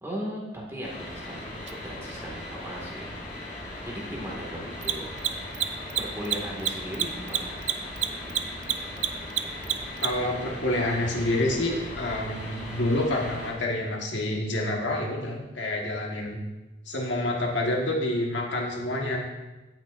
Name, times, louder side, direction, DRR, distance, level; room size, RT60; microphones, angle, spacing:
voice 1, 0.0-3.6 3.8-5.1 6.0-7.6, equal, 15° right, -3 dB, 1.9 m, -37 dB
sound 1, 0.8-13.5, left 1 dB, 45° left, 3.3 m, -39 dB
Mechanisms, 1.7-1.8 4.7-10.3, right 11 dB, 85° right, 0.6 m, -27 dB
voice 2, 10.0-16.4 16.9-19.2, left 1 dB, 75° left, -1 dB, 1.5 m, -28 dB
16.5 x 6.2 x 2.6 m, 1.1 s
head